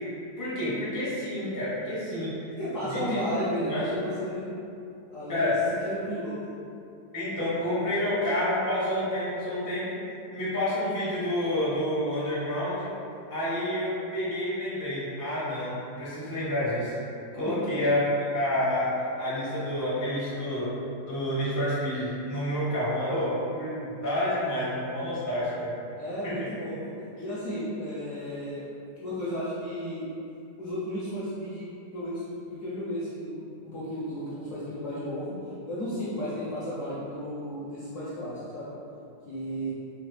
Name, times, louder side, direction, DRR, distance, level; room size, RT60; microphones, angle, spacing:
voice 1, 0.4-2.6 2.8-3.2 3.6-3.8 5.3-5.6 7.1-10.0 10.3-12.9 13.3-16.9 17.3-18.0 18.3-18.9 19.2-20.7 21.0-25.7 26.2-26.5, left 1 dB, 30° left, -9 dB, 0.3 m, -29 dB
voice 2, 2.6-4.5 5.1-5.5 5.8-6.6 17.5-17.9 26.0-28.7 29.0-30.1 30.6-31.7 31.9-35.4 35.7-38.7 39.2-39.7, equal, 70° left, -9 dB, 0.7 m, -33 dB
3.7 x 2.0 x 3.1 m, 2.7 s
omnidirectional pair, 1.9 m